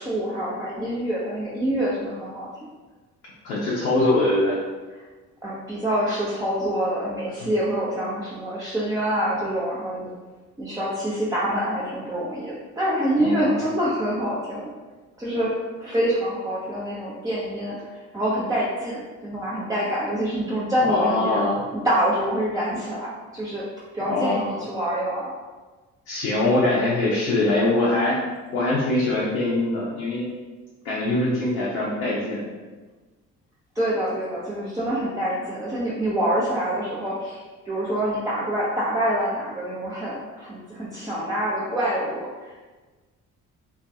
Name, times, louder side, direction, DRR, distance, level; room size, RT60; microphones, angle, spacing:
voice 1, 0.0-2.5 5.4-10.1 10.6-14.7 15.2-15.5 15.8-17.7 18.1-21.4 21.7-23.1 23.3-23.6 23.9-25.3 33.8-37.4 37.6-42.3, right 1 dB, 10° right, -8 dB, 0.4 m, -26 dB
voice 2, 3.4-4.6 7.3-7.5 13.2-13.6 20.8-21.7 24.0-24.6 26.1-28.2 28.5-30.3 30.8-32.5, left 2 dB, 70° left, -6 dB, 0.6 m, -23 dB
2.2 x 2.2 x 2.6 m, 1.3 s
figure-of-eight pair, 45°, 40 cm